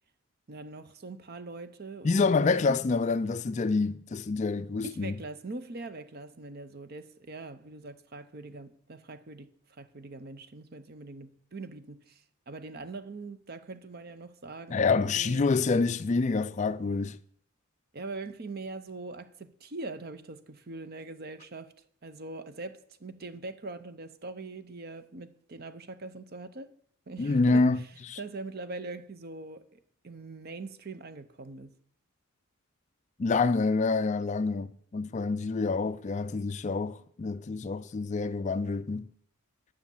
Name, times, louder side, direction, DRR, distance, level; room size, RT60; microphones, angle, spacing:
voice 1, 0.5-2.8 4.8-15.4 17.9-26.7 27.1-31.7, right 3 dB, 45° right, 0.6 m, -42 dB
voice 2, 2.0-5.1 14.7-17.2 27.2-27.8 28.1-28.2 33.2-39.1, left 4 dB, 30° left, 0.3 m, -27 dB
9.6 x 6.3 x 7.2 m
head